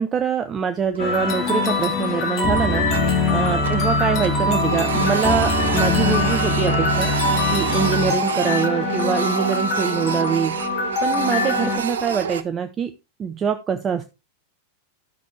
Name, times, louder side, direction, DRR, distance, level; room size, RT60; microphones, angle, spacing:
voice 1, 0.0-2.9 3.3-7.1 7.5-10.6 11.0-12.9 13.2-14.0, right 7 dB, 25° right, 8 dB, 0.7 m, -24 dB
Printer, 0.8-1.4 1.8-1.9 2.4-3.9 4.2-12.4, right 7 dB, 65° right, 0.6 m, -28 dB
sound 1, 1.0-11.8, left 3 dB, 40° left, 2.7 m, -22 dB
13.0 x 6.3 x 3.1 m, 0.25 s
figure-of-eight pair, 90°, 0 cm